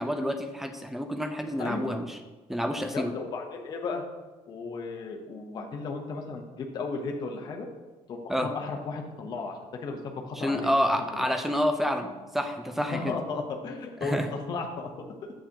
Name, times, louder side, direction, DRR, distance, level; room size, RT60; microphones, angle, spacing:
voice 1, 0.0-2.2 2.5-3.1 8.3-8.5 10.4-13.1 14.0-14.3, equal, 5° right, 6 dB, 0.4 m, -28 dB
voice 2, 1.6-2.0 2.9-4.0 4.5-7.7 8.1-10.7 11.1-11.3 12.8-14.9, left 4 dB, 35° left, 2 dB, 0.8 m, -35 dB
7.6 x 6.7 x 2.8 m, 1.2 s
cardioid pair, 175°, 12 cm